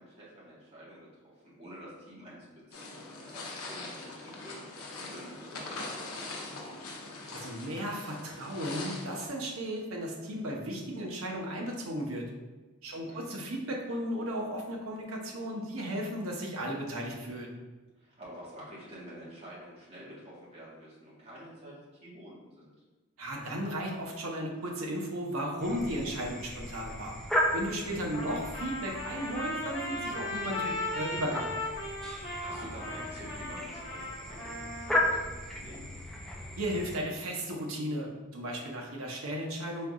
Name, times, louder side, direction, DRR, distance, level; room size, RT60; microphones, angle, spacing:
voice 1, 0.0-4.6 5.0-6.8 12.9-13.3 18.0-22.7 27.9-28.1 32.2-35.8, equal, 25° right, -7 dB, 1.3 m, -48 dB
sound 1, 2.7-9.3, left 2 dB, 80° left, 0.7 m, -42 dB
voice 2, 7.3-12.3 12.8-17.5 23.2-27.2 27.5-31.5 36.6-39.9, equal, 75° right, 0 dB, 0.8 m, -35 dB
sound 2, 25.6-37.0, left 1 dB, ahead, 0.3 m, -36 dB
Trumpet, 28.1-35.1, left 1 dB, 25° left, 1.1 m, -37 dB
4.5 x 3.6 x 2.3 m, 1.2 s
head